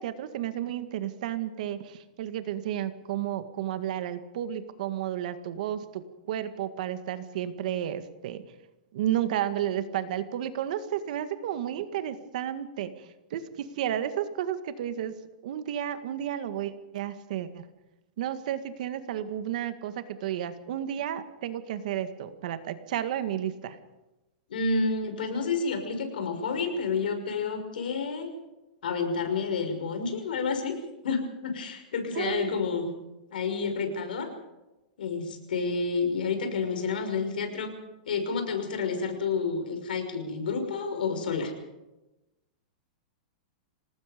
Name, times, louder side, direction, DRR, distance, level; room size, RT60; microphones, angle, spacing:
voice 1, 0.0-6.0 6.3-8.4 8.9-15.1 15.4-17.6 18.2-23.8 32.1-32.5, right 10 dB, 60° right, 10 dB, 1.9 m, -32 dB
voice 2, 24.5-28.3 28.8-30.7 31.0-32.9 33.3-34.3 35.0-37.7 38.1-41.5, left 4 dB, 90° left, 5 dB, 6.0 m, -29 dB
27.0 x 19.5 x 5.3 m, 1.0 s
supercardioid pair, 165°, 5 cm